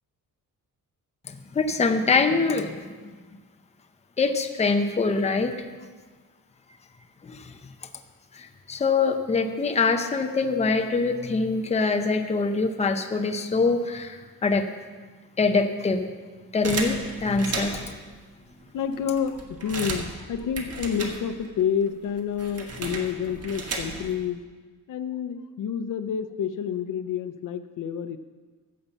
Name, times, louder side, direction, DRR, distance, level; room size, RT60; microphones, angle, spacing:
voice 1, 1.5-3.1 4.2-5.6 7.2-7.5 8.3-14.7 15.4-16.1 16.5-17.8, left 4 dB, 20° left, 6 dB, 0.7 m, -24 dB
sound 1, 16.6-18.0 18.6-18.7 18.9-21.6 21.9-24.2, right 3 dB, 45° right, 1.4 m, -34 dB
voice 2, 18.7-24.4 24.9-28.2, left 7 dB, 65° left, 10 dB, 0.7 m, -29 dB
14.5 x 5.5 x 7.1 m, 1.4 s
wide cardioid pair, 165°, 34 cm